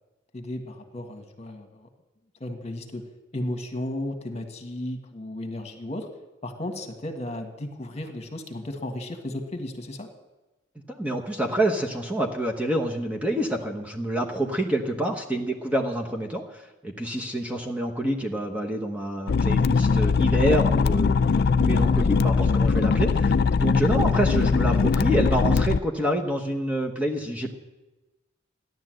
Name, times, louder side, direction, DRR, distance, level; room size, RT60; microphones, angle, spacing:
voice 1, 0.3-1.9 2.4-6.1 6.4-10.1, left 1 dB, 35° left, 4 dB, 1.7 m, -34 dB
voice 2, 10.9-27.5, right 1 dB, 5° right, 1 dB, 1.0 m, -27 dB
sound 1, 19.3-25.8, left 5 dB, 55° left, 0.4 m, -21 dB
15.0 x 11.0 x 7.7 m, 1.1 s
head